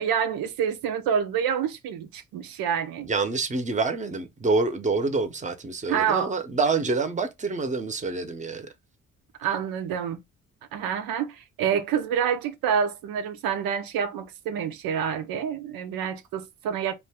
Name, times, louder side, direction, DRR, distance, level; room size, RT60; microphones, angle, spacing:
voice 1, 0.0-3.1 5.9-6.3 9.4-10.2 10.7-17.0, right 8 dB, 85° right, 0.6 m, -27 dB
voice 2, 3.0-8.7, right 3 dB, 20° right, 0.7 m, -27 dB
2.5 x 2.2 x 3.4 m
supercardioid pair, 65°, 35 cm